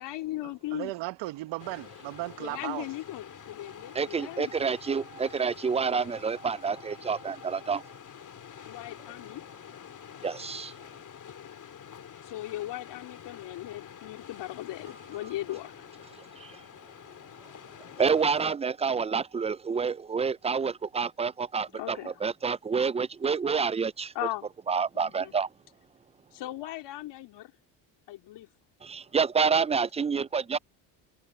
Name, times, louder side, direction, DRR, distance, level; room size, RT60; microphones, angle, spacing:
voice 1, 0.0-0.9 2.4-4.5 8.6-9.4 12.2-15.8 21.7-22.1 24.1-24.5 24.9-25.3 26.3-27.5 28.1-28.5, left 15 dB, 65° left, 3.0 m, -38 dB
voice 2, 0.7-2.9, right 19 dB, 75° right, 1.7 m, -36 dB
sound 1, 1.6-18.5, left 8 dB, 40° left, 3.0 m, -47 dB
voice 3, 3.9-7.8 10.2-10.7 16.4-16.5 18.0-24.1 24.7-25.5 28.8-30.6, right 5 dB, 15° right, 0.5 m, -28 dB
supercardioid pair, 80°, 44 cm